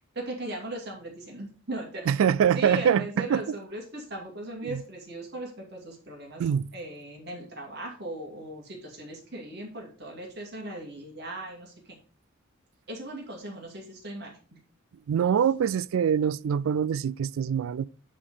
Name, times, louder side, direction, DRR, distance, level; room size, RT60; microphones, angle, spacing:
voice 1, 0.1-2.2 2.5-6.4 6.7-12.0 12.9-14.4, right 1 dB, 50° right, 2.4 m, -38 dB
voice 2, 2.1-3.4 4.6-4.8 6.4-6.7 15.1-17.8, right 8 dB, 80° right, 0.3 m, -24 dB
9.9 x 3.8 x 5.0 m
head